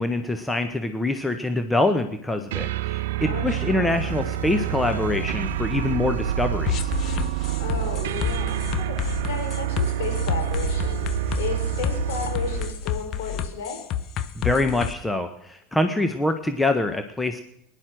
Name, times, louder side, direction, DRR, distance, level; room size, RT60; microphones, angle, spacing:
voice 1, 0.0-6.9 14.4-17.4, left 2 dB, 10° left, 7 dB, 1.3 m, -25 dB
sound 1, 2.5-12.8, right 15 dB, 65° right, 0.5 m, -28 dB
voice 2, 3.2-3.9 7.6-11.0 11.4-13.8, left 6 dB, 65° left, 3 dB, 4.8 m, -33 dB
sound 2, 3.8-8.0 10.0-13.1, left 5 dB, 80° left, 1.3 m, -36 dB
sound 3, 6.7-14.9, left 9 dB, 45° left, 1.1 m, -29 dB
20.0 x 11.0 x 6.3 m, 0.75 s
figure-of-eight pair, 80°, 0 cm